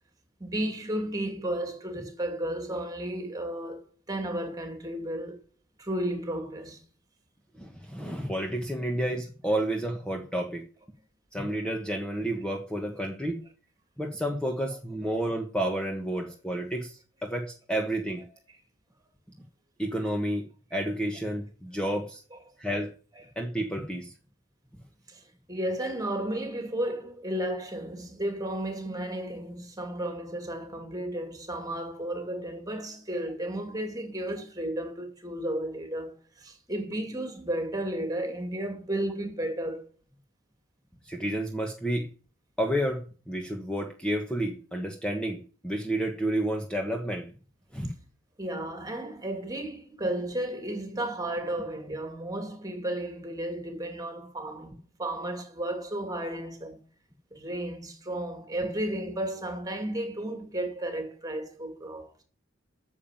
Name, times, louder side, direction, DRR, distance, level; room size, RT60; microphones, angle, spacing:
voice 1, 0.4-3.8 4.1-5.4 5.8-6.8 22.3-22.4 23.2-23.3 25.1-39.8 48.4-56.8 57.3-62.1, right 1 dB, 20° right, 2.7 m, -33 dB
voice 2, 7.6-10.6 11.3-13.4 14.0-18.2 19.8-20.4 20.7-22.2 22.6-22.9 23.3-24.1 41.1-42.1 42.6-43.0 43.3-47.3 47.7-47.9, right 1 dB, 5° left, 1.4 m, -30 dB
9.7 x 7.3 x 9.0 m
head